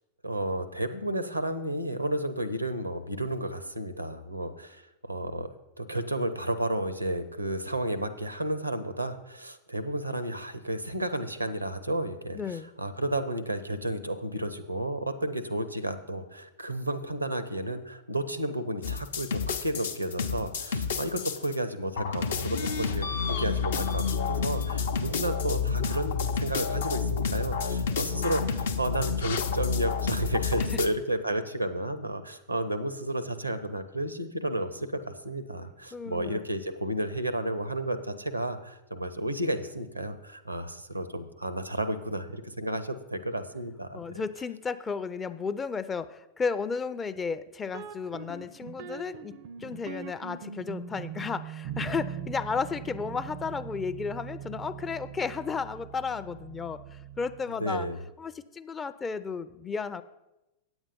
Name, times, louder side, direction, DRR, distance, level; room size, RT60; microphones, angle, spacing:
voice 1, 0.2-5.5 5.8-44.2 57.6-58.0, right 1 dB, 85° right, 12 dB, 0.7 m, -32 dB
voice 2, 12.4-12.7 30.7-30.8 35.9-36.4 43.9-49.3 49.6-57.9 58.2-60.0, left 5 dB, 20° left, 13 dB, 0.4 m, -33 dB
sound 1, 18.8-21.6 22.0-30.9, left 5 dB, 65° left, 0.6 m, -29 dB
sound 2, 47.7-57.5, right 9 dB, 50° right, 0.4 m, -41 dB
8.9 x 8.1 x 5.3 m, 0.94 s
figure-of-eight pair, 90°, 0 cm